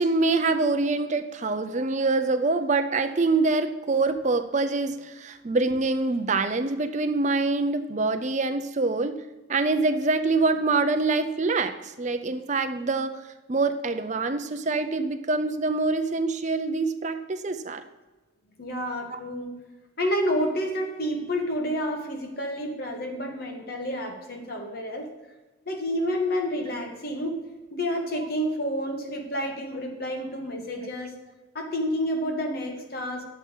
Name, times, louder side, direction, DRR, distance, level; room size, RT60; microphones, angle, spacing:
voice 1, 0.0-9.2 9.5-13.2 13.5-17.8 19.1-19.2, right 3 dB, 35° right, 8 dB, 0.6 m, -25 dB
voice 2, 18.6-19.5 20.0-25.1 25.6-27.4 27.7-31.1 31.5-33.2, equal, 50° left, 3 dB, 1.7 m, -29 dB
11.0 x 7.4 x 5.4 m, 1.2 s
head